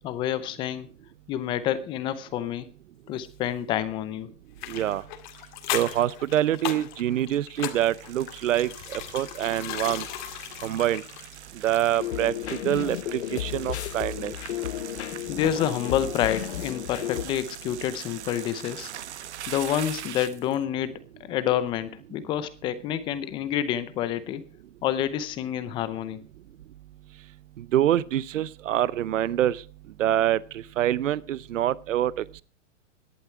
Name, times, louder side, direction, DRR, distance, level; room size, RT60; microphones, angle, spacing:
voice 1, 0.0-0.9 1.3-2.7 3.1-4.3 15.3-18.9 19.5-21.0 21.3-24.4 24.8-26.2, left 11 dB, 15° left, 13 dB, 0.6 m, -28 dB
sound 1, 4.6-12.2 12.4-12.5, left 13 dB, 40° left, 2.1 m, -37 dB
voice 2, 4.7-5.0 5.7-10.1 10.6-11.0 11.6-14.3 27.6-29.6 30.0-32.4, right 12 dB, 80° right, 21 dB, 0.8 m, -26 dB
sound 2, 7.6-20.6, right 11 dB, 60° right, 1.4 m, -42 dB
sound 3, 12.0-17.2, left 13 dB, 60° left, 0.8 m, -33 dB
17.5 x 11.5 x 4.6 m, 0.36 s
hypercardioid pair, 160°, 38 cm